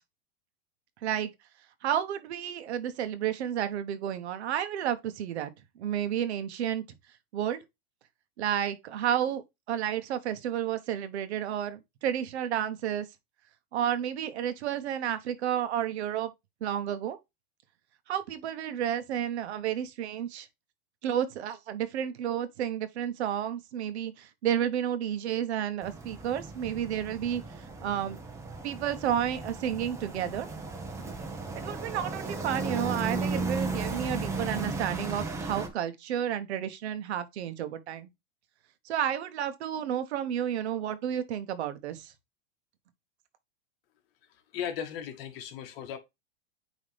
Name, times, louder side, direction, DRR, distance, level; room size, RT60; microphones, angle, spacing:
voice 1, 1.8-5.5 5.8-6.8 7.3-7.6 8.4-9.4 9.7-13.1 13.7-16.3 16.6-17.2 18.1-20.5 21.0-28.2 28.6-30.5 31.5-38.1 38.8-42.1, right 10 dB, 80° right, 1.2 m, -31 dB
sound 1, 25.8-35.7, right 3 dB, 10° right, 0.8 m, -35 dB
voice 2, 44.5-46.0, left 8 dB, 60° left, 1.5 m, -36 dB
9.4 x 3.2 x 3.4 m
supercardioid pair, 160°, 33 cm